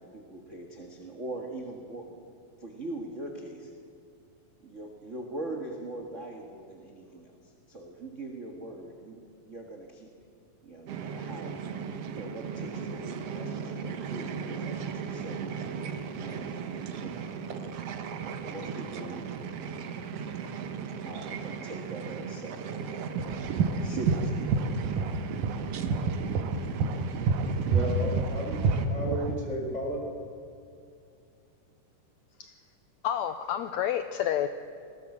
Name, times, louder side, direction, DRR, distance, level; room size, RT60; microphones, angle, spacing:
voice 1, 0.0-2.1 2.6-3.7 4.6-10.1 10.6-11.6 12.1-15.4 16.2-17.4 18.5-19.3 21.0-22.8 23.8-24.6, right 2 dB, 35° right, 1 dB, 1.3 m, -42 dB
sound 1, 10.9-28.9, right 6 dB, 60° right, 1.8 m, -37 dB
sound 2, 23.2-29.3, right 4 dB, 85° right, 2.7 m, -28 dB
voice 2, 27.6-28.6 28.9-30.0, equal, 10° left, -1 dB, 5.1 m, -34 dB
voice 3, 33.0-34.5, left 10 dB, 80° left, 9 dB, 1.7 m, -29 dB
20.0 x 18.0 x 7.3 m, 2.4 s
omnidirectional pair, 3.8 m